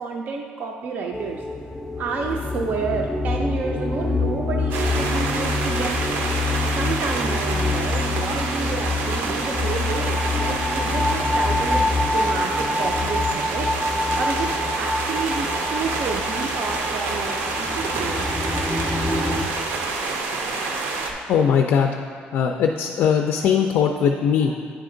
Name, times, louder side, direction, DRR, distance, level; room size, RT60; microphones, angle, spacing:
voice 1, 0.0-1.4 2.0-6.2 6.7-18.3, right 4 dB, 50° right, 1 dB, 0.4 m, -30 dB
sound 1, 1.1-19.5, left 2 dB, 5° left, 0.5 m, -26 dB
sound 2, 4.7-21.1, right 3 dB, 85° right, 0.7 m, -28 dB
voice 2, 21.3-21.9 22.3-24.6, left 7 dB, 65° left, 4 dB, 0.4 m, -20 dB
9.2 x 3.5 x 3.8 m, 2.4 s
cardioid pair, 130°, 4 cm